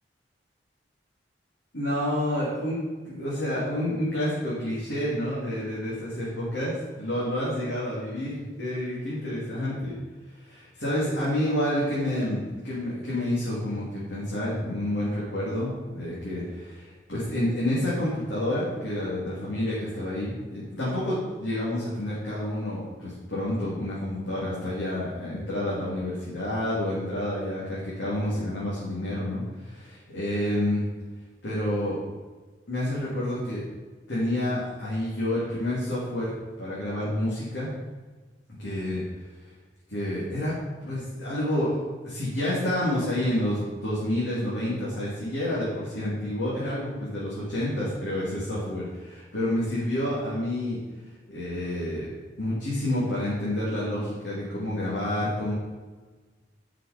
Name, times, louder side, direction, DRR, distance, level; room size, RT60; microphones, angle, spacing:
voice 1, 1.7-2.8 3.0-6.3 6.5-9.9 10.4-30.9 31.4-32.0 32.7-33.6 34.1-37.7 38.6-39.0 39.9-40.5 40.8-50.8 51.3-52.1 52.4-55.5, left 1 dB, 85° left, -8 dB, 2.8 m, -29 dB
10.5 x 5.8 x 5.1 m, 1.3 s
head